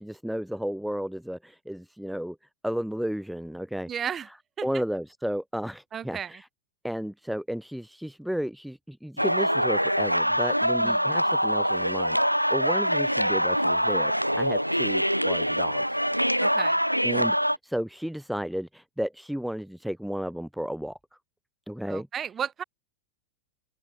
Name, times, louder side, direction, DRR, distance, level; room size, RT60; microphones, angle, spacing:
voice 1, 0.0-2.4 2.6-4.1 4.6-6.5 6.8-16.0 17.0-21.0 21.7-22.1, equal, ahead, 0.5 m, -33 dB
voice 2, 3.9-4.3 4.6-4.7 5.9-6.4 10.8-11.1 16.4-16.8 21.9-22.6, right 8 dB, 25° right, 1.8 m, -34 dB
sound 1, 9.2-17.6, equal, 90° right, 0.5 m, -24 dB
open air
figure-of-eight pair, 90°, 0 cm